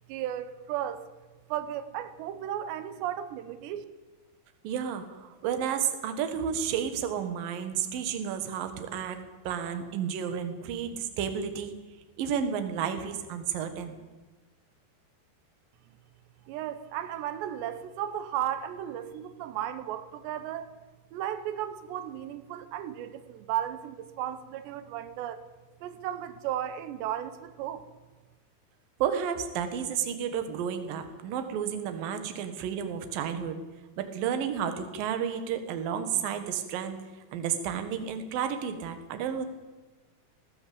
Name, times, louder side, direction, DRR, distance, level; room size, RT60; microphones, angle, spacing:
voice 1, 0.1-1.0 1.5-3.9 16.5-20.8 21.1-25.4 25.8-27.8, right 11 dB, 90° right, 3.3 m, -35 dB
voice 2, 4.6-9.2 9.4-11.7 12.2-14.0 29.0-33.6 34.0-37.0 37.3-39.5, right 8 dB, 65° right, 3.1 m, -31 dB
18.5 x 17.0 x 8.6 m
omnidirectional pair, 4.8 m